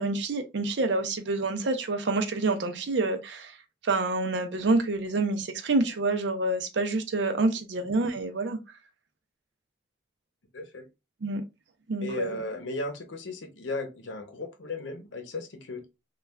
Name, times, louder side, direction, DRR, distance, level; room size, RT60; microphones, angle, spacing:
voice 1, 0.0-3.6 3.8-8.6 11.2-11.4 11.9-12.4, right 2 dB, 70° right, 0.5 m, -27 dB
voice 2, 10.5-10.9 12.0-15.8, left 2 dB, 90° left, 0.7 m, -35 dB
3.2 x 2.3 x 2.2 m
head